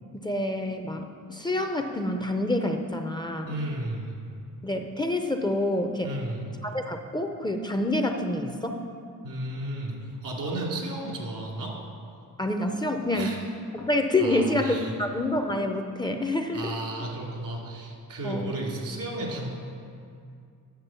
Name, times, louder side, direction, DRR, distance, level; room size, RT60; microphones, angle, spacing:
voice 1, 0.1-3.6 4.6-6.1 6.6-8.8 12.4-13.4 13.7-16.7 18.2-18.6, left 1 dB, 15° left, 5 dB, 0.5 m, -27 dB
voice 2, 3.4-4.1 6.0-6.4 9.2-11.7 13.1-13.4 14.2-14.9 16.5-19.5, right 1 dB, 85° right, -2 dB, 2.5 m, -33 dB
8.9 x 6.6 x 6.9 m, 2.3 s
cardioid pair, 135°, 32 cm